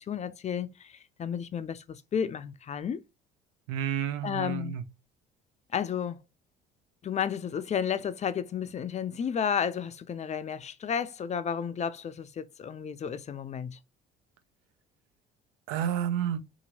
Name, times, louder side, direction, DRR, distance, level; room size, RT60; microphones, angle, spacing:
voice 1, 0.0-3.0 4.2-4.8 5.7-6.2 7.0-13.8, left 7 dB, 35° left, 0.4 m, -32 dB
voice 2, 3.7-4.8 15.7-16.4, right 9 dB, 80° right, 0.6 m, -30 dB
2.8 x 2.5 x 2.7 m
supercardioid pair, 75°, 21 cm